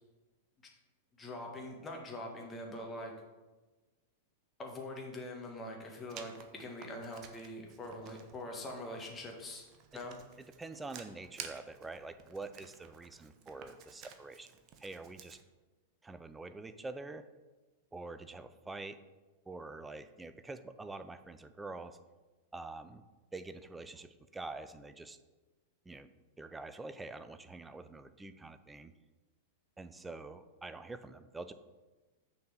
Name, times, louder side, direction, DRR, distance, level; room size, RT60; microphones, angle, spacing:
voice 1, 1.2-3.1 4.6-9.6 9.9-10.2, left 1 dB, 20° left, 1 dB, 1.7 m, -43 dB
Writing, 6.1-15.4, right 7 dB, 40° right, 0.9 m, -53 dB
voice 2, 10.6-14.5 14.8-15.4 16.0-17.3 17.9-19.0 19.5-22.0 22.5-23.0 23.3-25.2 25.9-26.1 26.4-28.9 29.8-31.5, right 3 dB, 10° right, 11 dB, 0.5 m, -46 dB
6.6 x 4.5 x 6.5 m, 1.2 s
figure-of-eight pair, 95°, 0 cm